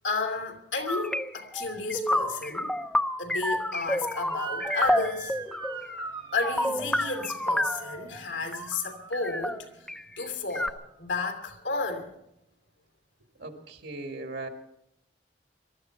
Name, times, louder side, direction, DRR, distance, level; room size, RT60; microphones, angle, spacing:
voice 1, 0.0-2.8 3.2-5.4 6.3-9.9 10.2-12.2, left 3 dB, 85° left, 3.0 m, -32 dB
sound 1, 0.9-8.0 8.5-8.8 9.1-10.0 10.5-10.7, left 1 dB, 5° left, 0.5 m, -29 dB
Motor vehicle (road) / Siren, 4.3-9.5, right 5 dB, 25° right, 1.0 m, -40 dB
voice 2, 13.4-14.5, right 2 dB, 75° right, 1.9 m, -38 dB
22.5 x 13.0 x 4.5 m
head